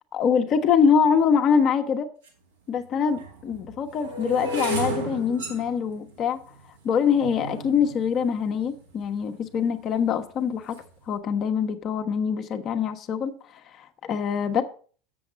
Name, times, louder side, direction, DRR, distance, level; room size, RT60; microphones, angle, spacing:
voice 1, 0.1-2.1 2.7-6.4 6.8-10.8 11.1-13.3 13.7-14.6, left 6 dB, 45° left, 1.0 m, -24 dB
sound 1, 2.3-2.4 3.1-9.3 9.9-10.3 10.5-10.9, right 2 dB, 80° right, 2.6 m, -34 dB
7.1 x 7.0 x 5.1 m
hypercardioid pair, 80°, 0 cm